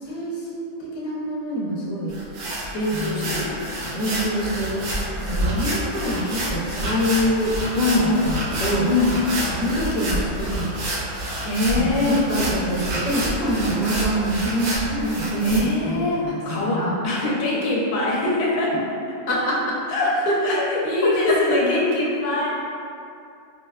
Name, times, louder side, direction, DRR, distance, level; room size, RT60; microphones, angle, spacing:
voice 1, 0.0-2.2 2.9-3.5 3.9-7.6 7.8-8.9 9.5-10.9 11.8-16.4 16.6-17.0 19.3-19.8 20.3-20.6 21.0-21.6, equal, 55° left, -6 dB, 0.9 m, -25 dB
sound 1, 2.1-15.6, right 1 dB, 85° right, 1.1 m, -28 dB
voice 2, 2.7-3.6 7.8-8.3 8.9-9.2 11.4-12.2 15.4-18.8 19.9-22.8, left 2 dB, 85° left, -5 dB, 1.0 m, -23 dB
4.6 x 2.1 x 2.2 m, 2.5 s
omnidirectional pair, 1.4 m